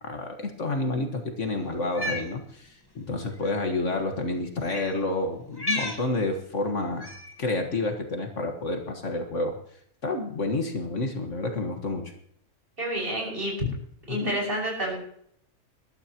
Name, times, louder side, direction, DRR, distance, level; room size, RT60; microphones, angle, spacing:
voice 1, 0.0-7.1 7.4-9.6 10.0-12.1 14.1-14.4, left 2 dB, 60° left, 4 dB, 1.8 m, -29 dB
Cat, 1.8-2.3 3.4-3.5 4.6-5.0 5.5-6.0 7.0-7.4, left 1 dB, 15° left, 1.4 m, -32 dB
voice 2, 12.8-13.6 14.1-14.9, right 1 dB, 40° right, -1 dB, 6.2 m, -29 dB
20.5 x 12.5 x 3.0 m, 0.66 s
omnidirectional pair, 1.5 m